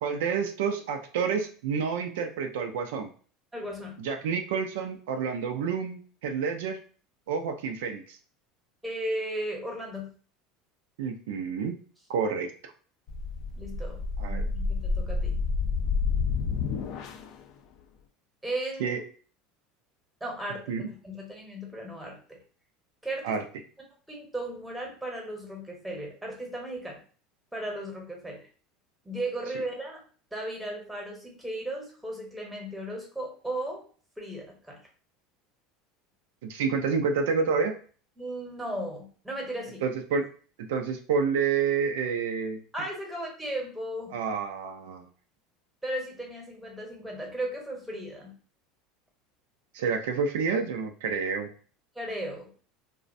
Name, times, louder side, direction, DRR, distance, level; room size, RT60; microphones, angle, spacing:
voice 1, 0.0-3.1 4.0-6.8 7.3-8.2 11.0-11.8 12.1-12.5 14.2-14.5 18.8-19.0 20.7-20.8 23.2-23.4 36.4-37.7 39.8-40.3 40.6-42.6 44.1-45.0 49.7-51.5, right 5 dB, 85° right, 5 dB, 0.3 m, -29 dB
voice 2, 3.5-4.0 8.8-10.1 13.6-15.4 18.4-19.0 20.2-20.6 21.0-22.4 23.0-23.4 24.1-27.0 27.5-28.5 29.0-30.0 30.3-33.8 34.2-34.8 38.2-39.8 42.7-44.2 45.8-48.4 52.0-52.5, right 1 dB, 5° right, -1 dB, 0.9 m, -36 dB
sound 1, 13.1-17.4, left 4 dB, 60° left, 0.3 m, -29 dB
2.4 x 2.0 x 2.5 m, 0.40 s
supercardioid pair, 115°, 0 cm